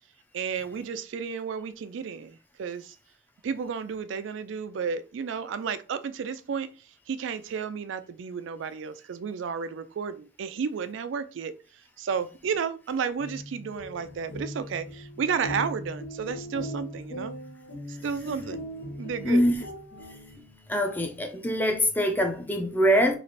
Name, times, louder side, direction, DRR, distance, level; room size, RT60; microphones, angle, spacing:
voice 1, 0.3-3.0 3.4-6.7 7.1-11.5 12.0-17.3 17.9-18.6 19.0-19.4, right 6 dB, 85° right, 0.4 m, -32 dB
sound 1, 13.0-20.7, equal, 80° left, 0.9 m, -39 dB
voice 2, 19.2-19.6 20.7-23.2, equal, 10° left, 0.5 m, -23 dB
3.2 x 2.5 x 4.0 m
head